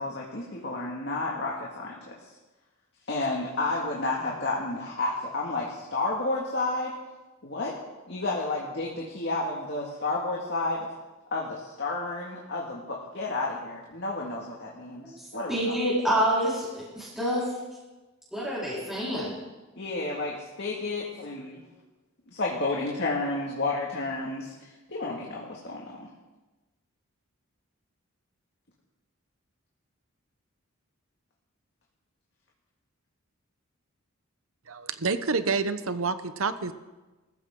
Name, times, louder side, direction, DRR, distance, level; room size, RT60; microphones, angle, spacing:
voice 1, 0.0-2.1 3.1-6.9 7.4-7.8 8.1-10.9 11.3-15.7 19.8-21.6 22.3-26.1, left 2 dB, 55° left, -3 dB, 2.1 m, -31 dB
voice 2, 15.0-17.5 18.3-19.3, equal, ahead, -10 dB, 4.4 m, -27 dB
voice 3, 34.7-36.7, right 4 dB, 70° right, 12 dB, 0.9 m, -28 dB
21.0 x 14.0 x 3.8 m, 1.2 s
head